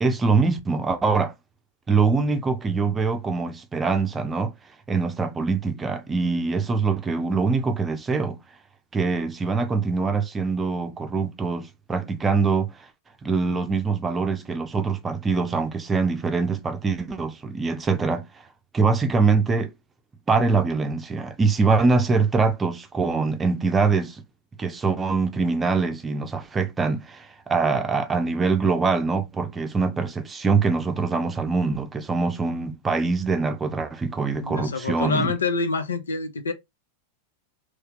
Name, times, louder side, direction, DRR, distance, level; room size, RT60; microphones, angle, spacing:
voice 1, 0.0-1.3 1.9-4.5 4.9-8.4 8.9-12.7 13.2-18.2 18.7-19.7 20.3-24.2 24.6-35.3, right 4 dB, 15° right, 0.6 m, -23 dB
voice 2, 34.4-36.5, left 3 dB, 70° left, 0.7 m, -26 dB
3.1 x 2.8 x 3.5 m
figure-of-eight pair, 90°, 0 cm